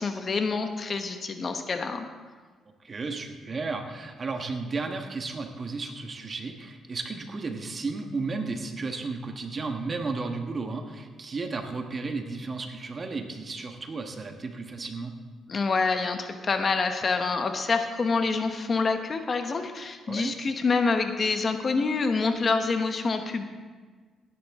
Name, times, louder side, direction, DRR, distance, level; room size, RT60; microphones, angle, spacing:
voice 1, 0.0-2.1 15.5-23.4, left 4 dB, 40° left, 6 dB, 1.0 m, -27 dB
voice 2, 2.8-15.1 20.1-20.3, right 3 dB, 35° right, 5 dB, 1.4 m, -33 dB
15.5 x 10.5 x 3.7 m, 1.5 s
cardioid pair, 90°, 0 cm